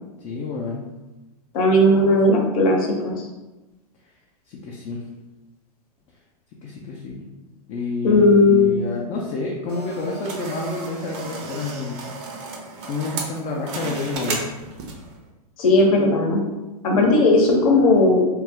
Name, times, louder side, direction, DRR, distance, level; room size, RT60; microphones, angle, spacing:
voice 1, 0.2-0.8 4.5-5.0 6.6-7.3 7.7-12.0 12.7-14.4, left 3 dB, 35° left, -2 dB, 0.4 m, -29 dB
voice 2, 1.5-3.3 8.0-8.7 15.6-16.4 16.8-18.2, left 2 dB, 65° left, 0 dB, 0.8 m, -16 dB
sound 1, 9.7-15.1, right 3 dB, 50° right, 0.6 m, -33 dB
2.3 x 2.0 x 3.4 m, 1.1 s
hypercardioid pair, 110°, 20 cm